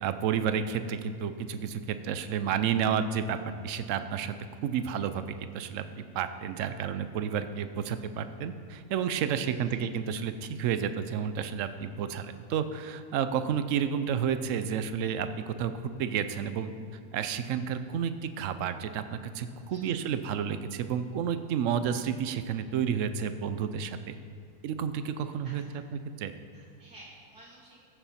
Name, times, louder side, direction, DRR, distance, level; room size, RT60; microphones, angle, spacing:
voice 1, 0.0-3.4 3.6-4.4 4.6-5.8 6.1-15.7 16.0-16.7 17.1-19.0 19.3-24.2 24.6-25.6 26.2-26.3, right 8 dB, 65° right, 10 dB, 0.9 m, -31 dB
voice 2, 9.4-9.8 19.7-20.0 25.2-25.8 26.5-27.8, right 1 dB, 85° right, -7 dB, 2.2 m, -54 dB
14.5 x 6.8 x 4.3 m, 2.3 s
omnidirectional pair, 1.6 m